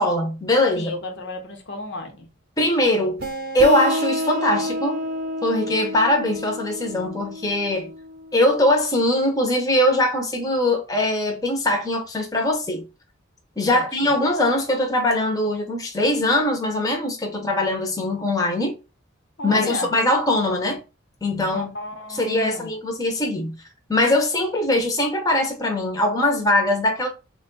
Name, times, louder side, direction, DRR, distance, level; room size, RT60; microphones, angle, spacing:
voice 1, 0.0-0.9 2.6-3.2 3.5-4.9 5.4-7.9 8.3-12.8 13.6-18.7 19.4-20.8 21.2-21.7 22.1-23.5 23.9-27.1, left 1 dB, 20° left, 0.7 m, -21 dB
voice 2, 0.8-2.3 13.7-14.1 19.4-19.9 21.5-22.7, left 2 dB, 60° left, 0.7 m, -33 dB
sound 1, 3.2-8.6, equal, 45° right, 0.7 m, -29 dB
3.4 x 2.3 x 3.8 m
head